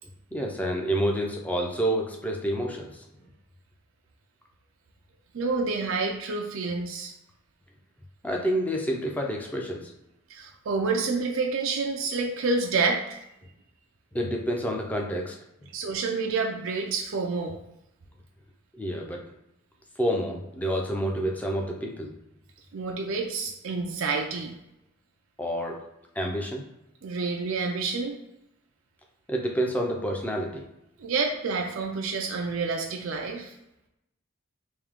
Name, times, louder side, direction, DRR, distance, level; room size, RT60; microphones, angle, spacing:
voice 1, 0.3-3.0 8.2-9.9 14.1-15.4 18.8-19.2 20.0-22.1 25.4-25.8 26.2-26.6 29.3-30.7, equal, 5° left, 0 dB, 0.5 m, -28 dB
voice 2, 5.3-7.1 10.3-13.2 15.7-17.6 22.7-24.6 27.0-28.1 31.0-33.5, right 4 dB, 75° right, 2 dB, 0.5 m, -28 dB
3.6 x 2.7 x 3.5 m, 0.86 s
head